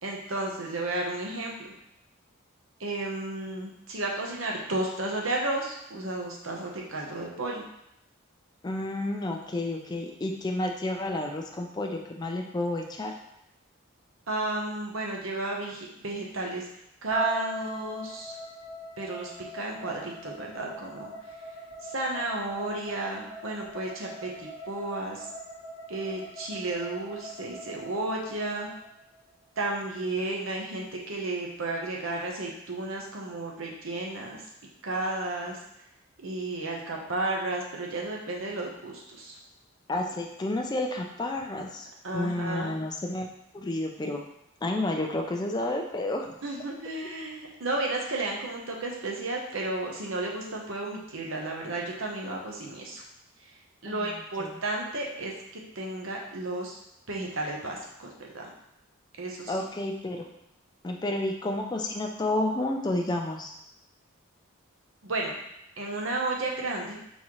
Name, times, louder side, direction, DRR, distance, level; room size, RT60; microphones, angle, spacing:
voice 1, 0.0-1.7 2.8-7.6 14.3-16.7 17.0-18.4 19.0-21.1 21.8-25.2 25.9-28.7 29.6-34.4 34.8-35.6 36.2-39.4 42.0-42.8 46.4-53.0 53.8-55.3 55.7-56.8 57.1-58.5 59.2-59.5 65.0-65.4 65.8-67.0, right 2 dB, 70° right, -1 dB, 0.9 m, -33 dB
voice 2, 8.6-13.1 39.9-41.9 42.1-43.3 43.5-44.2 44.6-46.3 53.9-54.0 54.4-54.5 59.5-60.3 60.8-63.5, left 1 dB, 20° left, 2 dB, 0.4 m, -30 dB
sound 1, 17.1-29.2, left 1 dB, 85° left, 1.0 m, -42 dB
4.2 x 3.7 x 3.0 m, 0.81 s
head